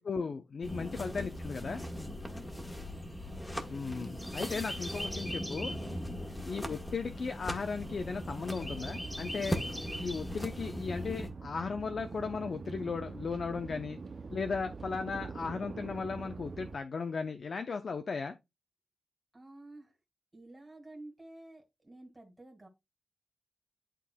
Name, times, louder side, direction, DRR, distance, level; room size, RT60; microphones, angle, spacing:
voice 1, 0.0-1.8 3.7-5.7 6.4-9.6 10.0-14.0 14.3-18.3, left 5 dB, 55° left, 0.6 m, -36 dB
sound 1, 0.6-11.3, equal, 10° left, 1.3 m, -39 dB
voice 2, 6.1-6.4 19.3-19.9 20.3-22.7, right 2 dB, 15° right, 2.2 m, -51 dB
sound 2, 7.8-16.8, right 4 dB, 45° right, 0.6 m, -44 dB
11.0 x 3.8 x 2.2 m
wide cardioid pair, 95°, 0 cm